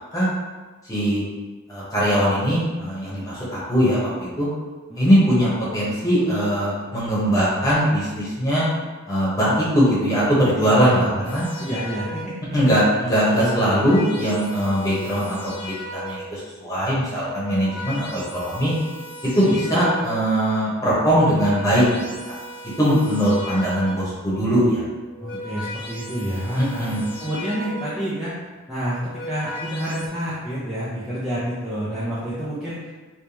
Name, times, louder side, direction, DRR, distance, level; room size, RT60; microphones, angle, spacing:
voice 1, 0.9-1.2 1.7-4.5 5.0-8.6 9.1-11.4 12.5-18.7 19.3-21.8 22.3-22.4 22.8-24.8 26.5-27.0, equal, 15° left, -9 dB, 1.1 m, -21 dB
voice 2, 10.8-11.2 11.6-12.4 13.3-13.8 19.4-19.7 25.2-28.4 28.7-32.9, equal, ahead, -11 dB, 0.5 m, -29 dB
sound 1, 11.2-12.5 13.3-16.4 17.1-20.3 21.1-24.2 25.0-28.2 28.9-30.1, left 1 dB, 60° left, 0.9 m, -37 dB
3.4 x 3.1 x 2.9 m, 1.3 s
head